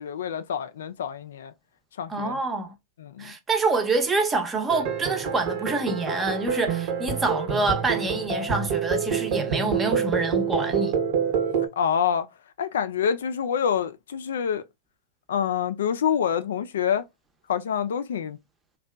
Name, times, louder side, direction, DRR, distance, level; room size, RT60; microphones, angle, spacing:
voice 1, 0.0-1.5 2.0-2.4 3.0-3.3 11.8-12.3 12.6-14.6 15.3-17.0 17.5-18.4, left 8 dB, 80° left, 0.3 m, -26 dB
voice 2, 2.1-2.7 3.2-11.0, right 3 dB, 20° right, 0.6 m, -26 dB
sound 1, 4.7-11.7, right 7 dB, 60° right, 0.8 m, -27 dB
2.7 x 2.2 x 2.2 m
hypercardioid pair, 110°, 0 cm